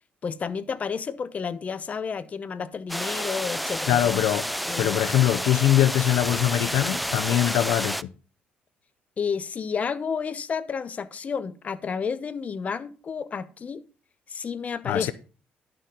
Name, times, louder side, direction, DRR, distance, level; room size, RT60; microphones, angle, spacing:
voice 1, 0.2-4.0 4.7-5.0 7.4-7.6 9.2-13.8 14.3-15.1, left 6 dB, 35° left, 0.8 m, -31 dB
sound 1, 2.9-8.0, equal, ahead, 0.4 m, -30 dB
voice 2, 3.9-4.5 4.8-8.1 14.9-15.1, left 13 dB, 80° left, 0.5 m, -22 dB
11.0 x 6.8 x 3.8 m
cardioid pair, 95°, 4 cm